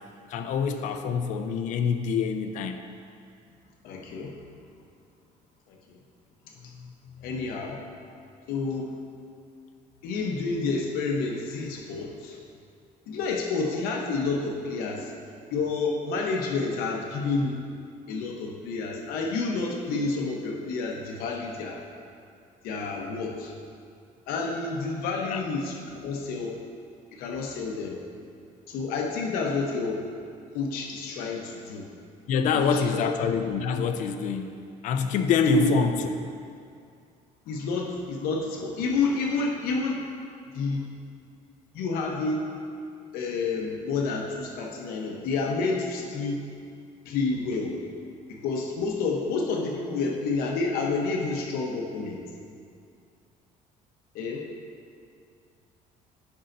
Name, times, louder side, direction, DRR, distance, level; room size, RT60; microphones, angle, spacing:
voice 1, 0.3-2.8 6.8-7.3 25.2-25.4 32.3-36.1, left 6 dB, 55° left, 6 dB, 0.5 m, -26 dB
voice 2, 3.8-4.3 5.7-6.0 7.2-7.8 8.5-8.9 10.0-12.4 13.1-15.1 15.5-17.6 18.1-21.8 22.6-23.5 24.3-26.6 27.1-28.0 28.7-30.0 30.5-31.9 32.5-33.0 35.5-35.7 37.5-40.0 40.5-40.9 41.7-42.4 43.1-46.4 47.0-47.7 48.3-52.2 54.1-54.4, left 3 dB, 85° left, 0 dB, 0.9 m, -29 dB
14.5 x 5.6 x 2.6 m, 2.4 s
cardioid pair, 165°, 15 cm